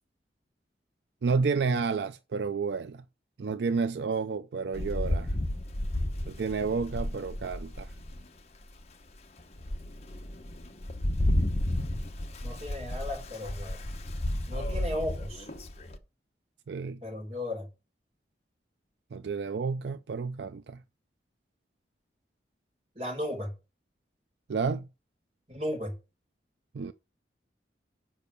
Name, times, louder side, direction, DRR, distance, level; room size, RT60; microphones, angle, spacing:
voice 1, 1.2-3.0 3.4-5.3 6.3-7.9 16.7-17.0 19.1-20.8 24.5-24.9 26.7-26.9, right 5 dB, 75° right, 0.4 m, -30 dB
Rain, 4.7-8.3 8.8-8.9 9.4-16.0, left 1 dB, 35° left, 1.0 m, -32 dB
voice 2, 12.4-13.8 14.5-15.4 17.0-17.6 23.0-23.5 25.5-25.9, left 1 dB, 35° right, 3.9 m, -35 dB
7.0 x 5.5 x 6.7 m
head